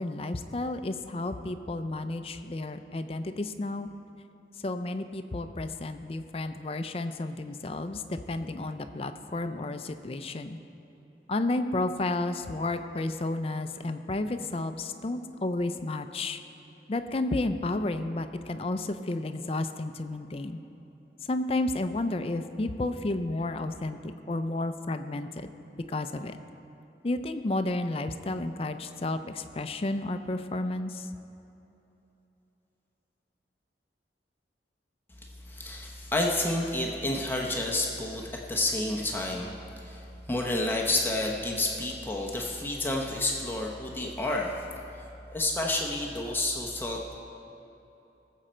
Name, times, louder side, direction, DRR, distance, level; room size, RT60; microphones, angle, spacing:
voice 1, 0.0-3.9 4.6-10.6 11.3-16.4 16.9-20.6 21.2-25.5 25.9-26.4 27.0-31.1, left 2 dB, 35° left, 9 dB, 0.5 m, -32 dB
voice 2, 35.2-44.5 45.3-47.2, left 2 dB, 10° left, -1 dB, 0.8 m, -30 dB
18.5 x 7.5 x 4.4 m, 3.0 s
head